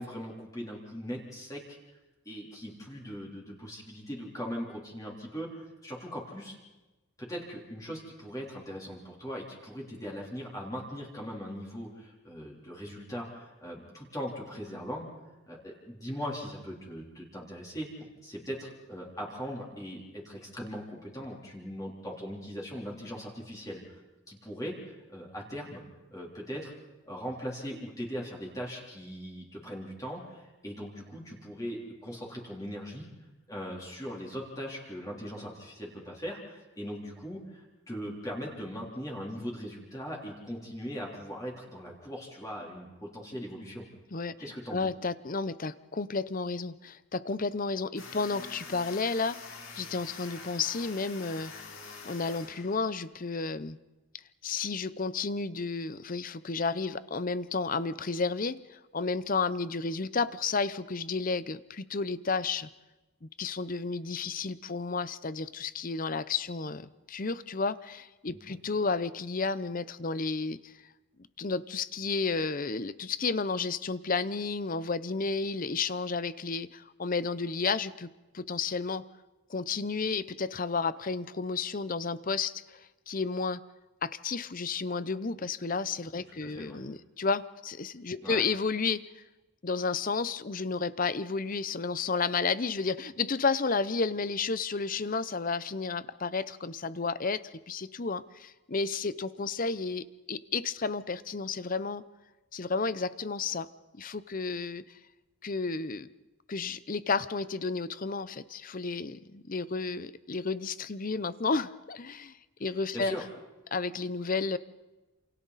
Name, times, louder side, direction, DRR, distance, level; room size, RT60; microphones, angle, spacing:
voice 1, 0.0-2.0 2.2-6.6 7.2-15.1 15.5-17.9 18.2-24.0 24.3-25.8 26.1-26.7 27.0-33.1 33.5-43.9 44.4-44.9 68.3-68.6 86.1-86.8 88.2-88.4 112.7-113.2, equal, 15° left, -3 dB, 3.6 m, -40 dB
voice 2, 44.7-49.4 49.8-51.5 52.0-53.8 54.4-62.7 63.2-70.7 71.4-79.0 79.5-83.6 84.0-89.2 89.6-102.0 102.5-103.7 103.9-104.8 105.4-106.1 106.5-113.2 113.7-114.6, left 4 dB, 40° left, 15 dB, 0.7 m, -32 dB
sound 1, 48.0-53.1, left 4 dB, 60° left, 4.1 m, -46 dB
28.5 x 28.0 x 4.2 m, 1.1 s
head